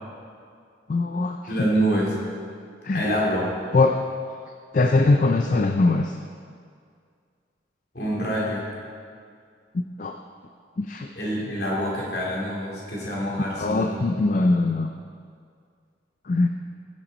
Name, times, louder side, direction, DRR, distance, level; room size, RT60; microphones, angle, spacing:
voice 1, 0.9-1.4 2.8-3.1 3.7-4.0 4.7-6.1 9.7-10.1 10.8-11.1 13.6-14.9 16.3-16.5, left 3 dB, 45° left, 4 dB, 0.4 m, -21 dB
voice 2, 1.5-2.2 2.9-3.4 7.9-8.7 11.1-14.0, equal, 65° left, -4 dB, 2.8 m, -26 dB
16.0 x 7.3 x 4.1 m, 2.2 s
head